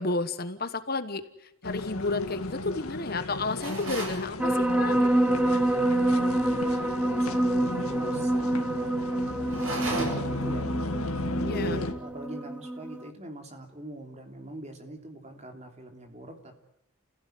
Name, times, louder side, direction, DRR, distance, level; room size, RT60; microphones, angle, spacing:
voice 1, 0.0-5.1 11.4-11.8, left 3 dB, 45° left, 10 dB, 1.2 m, -32 dB
sound 1, 1.6-11.9, left 2 dB, 85° left, 2.0 m, -35 dB
sound 2, 3.6-4.2 9.5-10.4, right 2 dB, 65° right, 7.8 m, -33 dB
sound 3, 4.4-13.1, right 1 dB, 5° right, 0.9 m, -27 dB
voice 2, 6.0-10.7 11.2-16.6, right 1 dB, 30° right, 4 dB, 3.2 m, -43 dB
30.0 x 16.0 x 9.3 m, 0.85 s
head